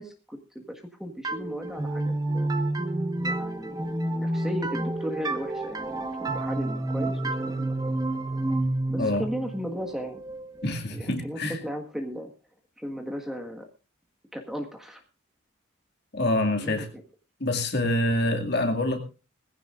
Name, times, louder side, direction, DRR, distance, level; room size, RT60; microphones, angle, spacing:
voice 1, 0.0-2.5 3.2-7.8 8.9-10.2 10.9-12.3 12.8-13.7 14.3-15.0 16.5-17.0, equal, ahead, 3 dB, 1.5 m, -36 dB
sound 1, 1.2-10.8, right 2 dB, 20° right, 1.2 m, -29 dB
voice 2, 10.6-11.6 16.1-16.9 17.4-19.0, left 1 dB, 50° left, 4 dB, 2.2 m, -26 dB
19.5 x 15.5 x 2.5 m, 0.32 s
head